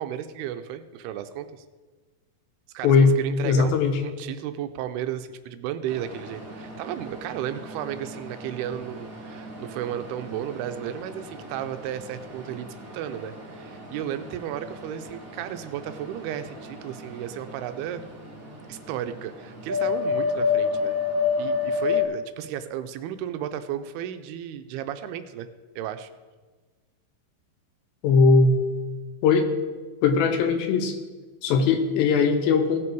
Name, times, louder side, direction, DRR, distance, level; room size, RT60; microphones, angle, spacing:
voice 1, 0.0-1.6 2.7-12.7 12.9-18.1 18.7-21.0 21.4-25.5 25.8-26.1 31.7-31.8, right 10 dB, 85° right, 9 dB, 2.5 m, -34 dB
voice 2, 3.4-3.9 28.0-28.6 29.2-29.5 30.0-31.0 31.4-32.8, left 4 dB, 75° left, 6 dB, 2.6 m, -19 dB
sound 1, 5.9-22.0, left 5 dB, 35° right, 1.4 m, -32 dB
17.5 x 6.1 x 4.6 m, 1.3 s
omnidirectional pair, 4.6 m